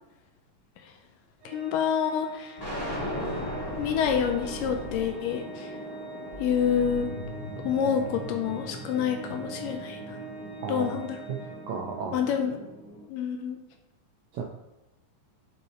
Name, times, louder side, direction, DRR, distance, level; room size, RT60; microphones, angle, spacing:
Organ, 1.4-12.2, right 3 dB, 55° right, 2.4 m, -43 dB
voice 1, 1.5-2.6 3.8-5.7 6.4-7.1 7.6-10.2 10.7-11.2 12.1-12.6 13.1-13.6, left 8 dB, 80° left, 4 dB, 2.1 m, -27 dB
sound 1, 2.6-8.7, equal, 20° left, 1.1 m, -39 dB
sound 2, 2.6-13.0, equal, 20° right, 1.3 m, -41 dB
voice 2, 10.6-11.0 11.7-12.2 14.3-14.4, right 5 dB, 80° right, 0 dB, 1.7 m, -33 dB
5.5 x 5.2 x 4.2 m, 0.96 s
omnidirectional pair, 4.1 m